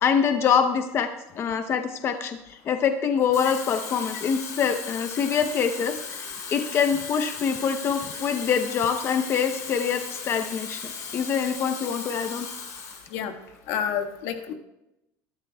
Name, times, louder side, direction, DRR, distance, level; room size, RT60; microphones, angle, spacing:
voice 1, 0.0-12.5, left 7 dB, 35° left, 7 dB, 0.7 m, -25 dB
Water tap faucet / Fill (with liquid), 3.2-13.1 13.5-13.7, left 6 dB, 55° left, 3.4 m, -37 dB
voice 2, 13.7-14.5, left 8 dB, 75° left, 6 dB, 1.5 m, -29 dB
22.0 x 12.5 x 2.3 m, 0.90 s
cardioid pair, 140°, 7 cm